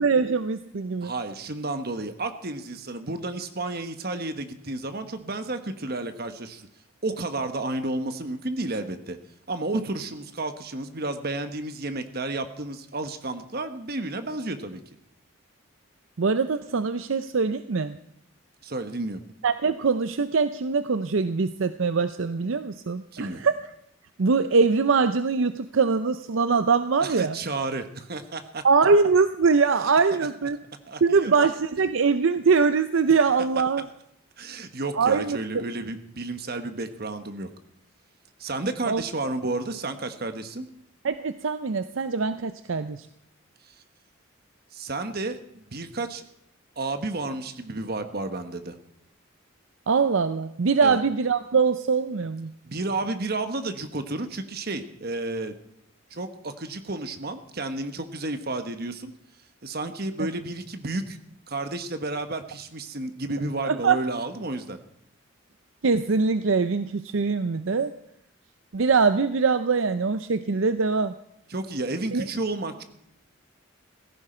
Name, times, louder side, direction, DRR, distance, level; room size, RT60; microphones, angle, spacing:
voice 1, 0.0-1.1 16.2-18.0 19.4-23.5 24.2-27.4 28.6-30.6 31.0-33.8 34.9-35.6 38.9-39.0 41.0-43.1 49.9-52.5 63.6-64.0 65.8-67.9 68.7-71.1 72.1-72.2, right 4 dB, 70° right, 11 dB, 0.6 m, -23 dB
voice 2, 1.0-6.7 7.0-9.2 9.5-14.8 18.6-19.2 23.1-23.4 27.0-28.6 30.4-30.5 30.9-31.3 34.4-37.5 38.4-40.7 43.6-43.7 44.7-46.2 46.8-48.8 50.8-51.0 52.6-55.5 56.1-59.1 59.6-61.2 61.5-64.8 71.5-72.8, right 2 dB, 50° right, 8 dB, 1.3 m, -31 dB
16.5 x 14.5 x 4.4 m, 0.76 s
head